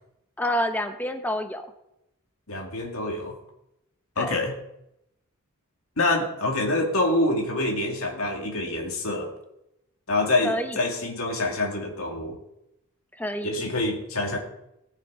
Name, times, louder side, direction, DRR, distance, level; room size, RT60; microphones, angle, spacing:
voice 1, 0.4-1.6 4.2-4.4 10.4-10.8 13.2-13.5, equal, 10° left, 7 dB, 1.0 m, -28 dB
voice 2, 2.5-3.3 4.2-4.5 6.0-9.3 10.1-12.4 13.4-14.4, left 2 dB, 75° left, 1 dB, 2.3 m, -26 dB
18.5 x 6.5 x 4.9 m, 0.84 s
head